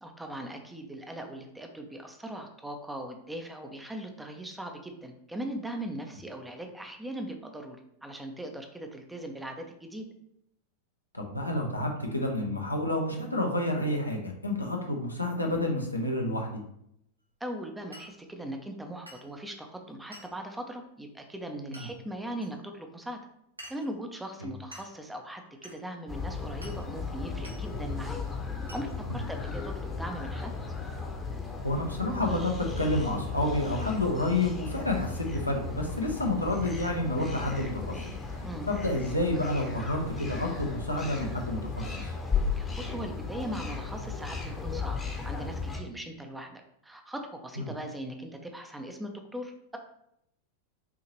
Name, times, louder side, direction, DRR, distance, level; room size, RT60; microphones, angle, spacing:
voice 1, 0.0-10.1 17.4-23.2 23.7-28.2 28.7-30.5 38.4-38.7 42.6-45.0 45.2-49.8, right 1 dB, 5° right, 4 dB, 0.6 m, -39 dB
voice 2, 11.1-16.6 21.7-21.8 24.4-24.5 29.1-29.2 31.6-38.0 38.7-42.1 47.6-47.7, left 1 dB, 85° left, 1 dB, 0.8 m, -29 dB
Glass, 17.9-18.2 19.1-19.3 20.1-20.4 21.7-21.9 22.4-22.5 23.6-23.9 24.7-25.0 25.6-25.8 26.6-26.8 27.4-27.6 28.7-28.9, equal, 80° right, 0.8 m, -47 dB
sound 1, 26.1-45.8, left 4 dB, 15° left, 0.9 m, -35 dB
5.9 x 2.8 x 3.0 m, 0.75 s
figure-of-eight pair, 90°, 0 cm